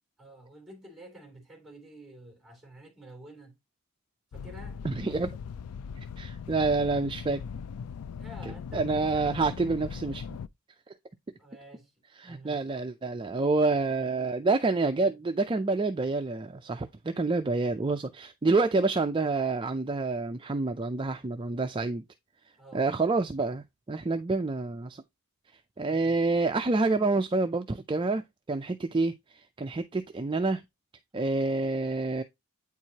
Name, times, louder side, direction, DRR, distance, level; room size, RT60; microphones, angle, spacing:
voice 1, 0.2-3.6 4.3-4.8 8.2-9.4 11.4-11.9 12.2-12.6 22.6-22.9 25.9-26.1, right 1 dB, ahead, 2.8 m, -50 dB
sound 1, 4.3-10.5, left 6 dB, 80° left, 0.4 m, -39 dB
voice 2, 4.8-5.3 6.0-7.4 8.4-10.2 12.2-22.0 22.7-25.0 25.8-28.2 28.5-30.6 31.1-32.2, right 3 dB, 20° right, 0.4 m, -28 dB
8.8 x 4.7 x 2.8 m
head